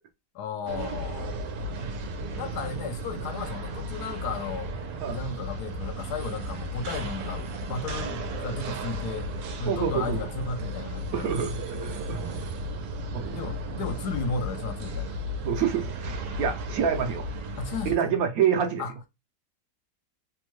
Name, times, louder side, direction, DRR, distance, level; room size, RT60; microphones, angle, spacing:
voice 1, 0.3-1.4 2.3-4.7 5.1-9.3 9.6-11.3 13.2-15.2 17.6-18.1 18.8-18.9, left 4 dB, 75° left, 1.1 m, -34 dB
sound 1, 0.7-18.0, right 1 dB, 85° right, 1.3 m, -34 dB
voice 2, 9.7-10.2 11.1-12.2 13.1-13.4 15.4-17.3 17.8-18.8, right 8 dB, 70° right, 0.9 m, -27 dB
3.4 x 2.1 x 3.0 m
omnidirectional pair, 1.8 m